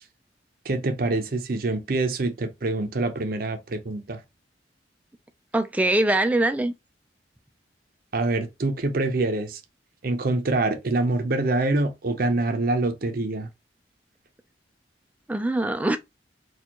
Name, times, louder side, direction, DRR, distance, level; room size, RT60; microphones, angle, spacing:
voice 1, 0.6-4.2 8.1-9.6 10.0-13.5, right 2 dB, 55° right, 0.6 m, -25 dB
voice 2, 5.5-6.7 15.3-16.0, right 1 dB, 10° right, 0.3 m, -22 dB
4.3 x 2.4 x 2.8 m
head